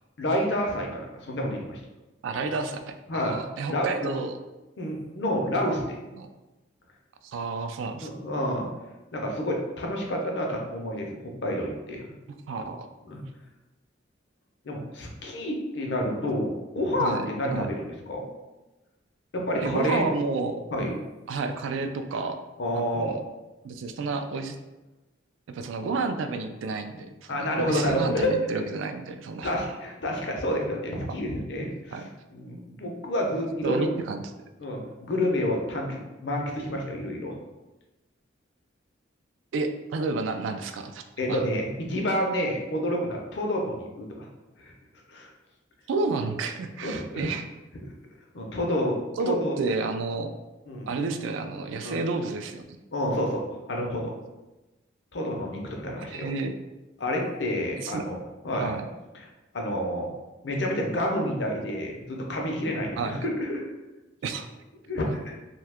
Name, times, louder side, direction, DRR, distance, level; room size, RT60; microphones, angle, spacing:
voice 1, 0.2-1.8 3.1-3.4 3.7-4.1 4.8-6.0 8.0-8.7 9.1-12.0 13.1-13.2 14.6-18.3 19.3-20.0 20.7-21.0 22.6-23.2 27.3-28.6 29.4-33.9 34.6-37.4 41.2-44.3 44.6-44.7 45.1-45.3 46.8-47.3 48.3-49.0 49.2-49.6 50.7-51.0 51.8-52.0 52.9-53.4 53.7-54.1 55.1-56.3 57.0-58.7 59.1-59.3 59.5-60.1 60.4-63.6 64.9-65.4, equal, 60° left, 0 dB, 0.6 m, -29 dB
voice 2, 2.2-4.3 6.1-6.3 7.2-8.1 12.5-12.9 17.0-17.3 17.5-17.7 19.6-20.6 21.3-22.4 22.7-23.2 23.6-24.6 25.5-29.5 31.1-31.2 31.9-32.1 33.6-34.3 39.5-41.4 45.9-47.5 49.2-50.3 50.9-52.8 56.0-56.5 57.8-58.0 58.6-58.9 63.0-63.2 64.2-64.5, right 3 dB, 75° right, 7 dB, 0.3 m, -30 dB
2.7 x 2.2 x 3.4 m, 1.1 s
head